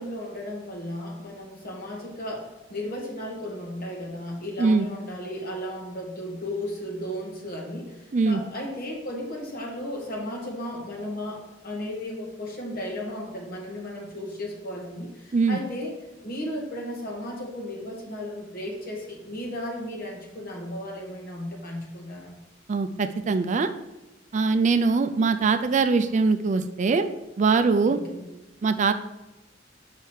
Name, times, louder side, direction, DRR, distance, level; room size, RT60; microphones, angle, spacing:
voice 1, 0.0-2.4 2.7-7.9 8.2-15.9 16.2-22.3 27.9-28.2, left 1 dB, 50° left, -1 dB, 1.9 m, -35 dB
voice 2, 22.7-23.7 24.3-27.1 27.4-28.0 28.6-28.9, right 4 dB, 40° right, 9 dB, 0.4 m, -22 dB
6.1 x 5.6 x 4.9 m, 0.98 s
head